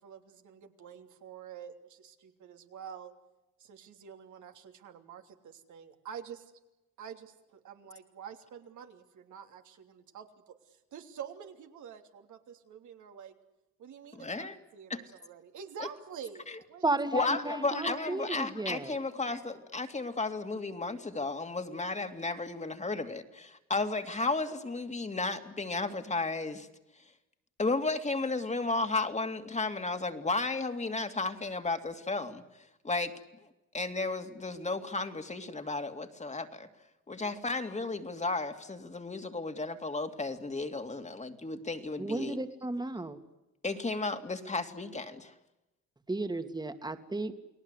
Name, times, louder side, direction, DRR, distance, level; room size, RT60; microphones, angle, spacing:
voice 1, 0.0-3.1 3.6-6.5 7.0-13.3 13.8-16.8, right 7 dB, 75° right, 5 dB, 3.2 m, -47 dB
voice 2, 14.1-14.6 14.9-15.0 16.5-16.6 17.1-26.7 27.6-33.1 33.7-36.7 37.1-42.4 43.6-45.3, left 3 dB, 25° left, 7 dB, 2.4 m, -33 dB
voice 3, 16.8-18.9 42.0-43.2 46.1-47.3, right 2 dB, 15° right, 9 dB, 2.2 m, -33 dB
29.5 x 19.0 x 8.2 m, 0.97 s
cardioid pair, 90°, 30 cm